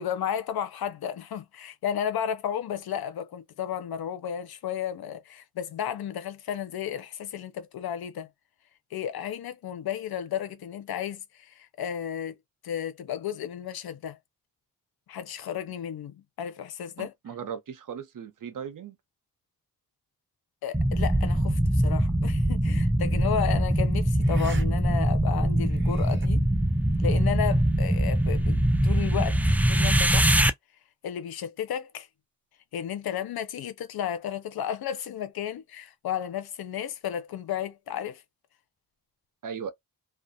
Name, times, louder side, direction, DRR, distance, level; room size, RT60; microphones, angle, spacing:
voice 1, 0.0-8.3 8.9-12.3 12.6-14.2 15.1-17.1 20.6-26.4 27.0-30.3 31.0-32.1 32.7-38.2, left 9 dB, 90° left, 0.6 m, -33 dB
voice 2, 17.0-19.0 39.4-39.7, right 7 dB, 60° right, 0.7 m, -37 dB
sound 1, 20.7-30.5, right 1 dB, 5° right, 0.3 m, -23 dB
sound 2, 22.6-22.9 24.2-24.7 25.0-25.1 25.6-26.3, right 3 dB, 30° right, 0.9 m, -44 dB
2.4 x 2.0 x 2.6 m
cardioid pair, 65°, 36 cm